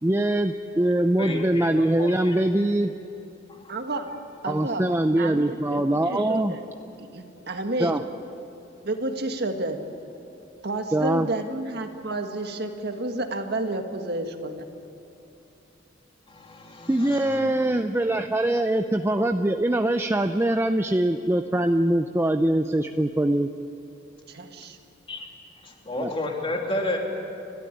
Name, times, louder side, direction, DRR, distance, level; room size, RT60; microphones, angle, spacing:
voice 1, 0.0-2.9 4.5-6.5 7.8-8.0 10.9-11.3 16.9-23.5 26.0-26.1, right 1 dB, 15° right, 7 dB, 0.6 m, -23 dB
voice 2, 1.2-2.3 3.5-3.7 16.3-17.4 25.1-25.3 25.6-27.0, left 1 dB, 30° left, 1 dB, 3.0 m, -32 dB
voice 3, 3.7-4.1 4.4-4.9 5.2-6.6 7.0-8.0 8.8-9.8 10.6-14.7 24.3-24.8, right 2 dB, 60° right, 5 dB, 1.7 m, -30 dB
30.0 x 13.0 x 10.0 m, 2.7 s
head